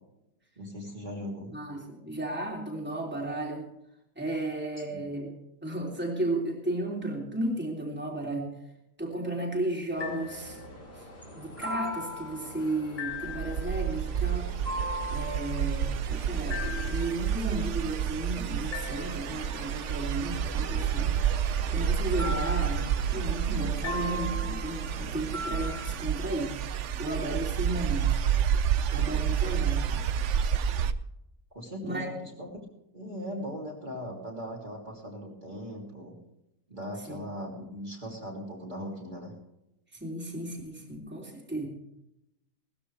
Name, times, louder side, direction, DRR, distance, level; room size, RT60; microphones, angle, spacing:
voice 1, 0.6-1.5 4.9-5.0 29.4-29.5 29.9-30.0 31.5-32.5 32.9-36.2 36.7-39.3, equal, 30° right, -3 dB, 3.3 m, -39 dB
voice 2, 1.5-3.7 4.1-5.4 5.6-8.5 9.0-10.6 11.3-14.5 15.1-21.1 21.7-26.6 27.0-28.2 28.9-29.9 31.8-32.1 37.1-37.2 40.0-41.7, right 1 dB, 5° right, -2 dB, 3.2 m, -34 dB
sound 1, 10.0-26.0, left 1 dB, 45° left, 4.7 m, -39 dB
sound 2, 13.1-30.9, right 8 dB, 65° right, 0.9 m, -29 dB
19.0 x 14.0 x 3.4 m, 0.86 s
omnidirectional pair, 1.5 m